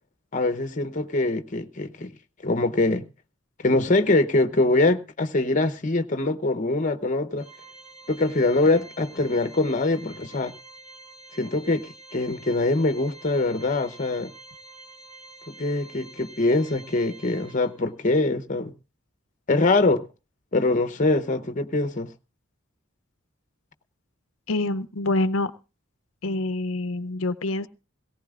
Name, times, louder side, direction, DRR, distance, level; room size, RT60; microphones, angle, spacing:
voice 1, 0.3-2.1 2.4-3.1 3.6-7.4 8.1-10.5 11.4-14.3 15.5-18.7 19.5-20.1 20.5-22.1, left 2 dB, 40° left, 0.8 m, -23 dB
Organ, 7.4-18.0, right 3 dB, 30° right, 3.7 m, -47 dB
voice 2, 24.5-25.5 26.2-27.7, left 2 dB, 85° left, 0.7 m, -26 dB
18.0 x 17.0 x 2.4 m
head